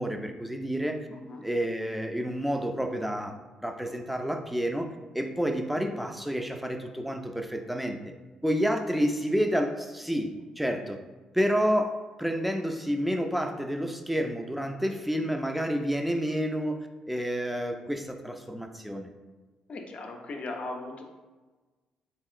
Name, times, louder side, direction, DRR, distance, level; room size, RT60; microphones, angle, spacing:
voice 1, 0.0-1.1 1.4-3.3 3.6-4.9 5.1-8.0 8.4-11.0 11.3-19.1, equal, 5° right, 5 dB, 0.4 m, -29 dB
voice 2, 1.1-1.4 19.7-21.0, left 2 dB, 50° left, 3 dB, 0.5 m, -38 dB
3.6 x 2.8 x 2.4 m, 1.2 s
hypercardioid pair, 55°, 3 cm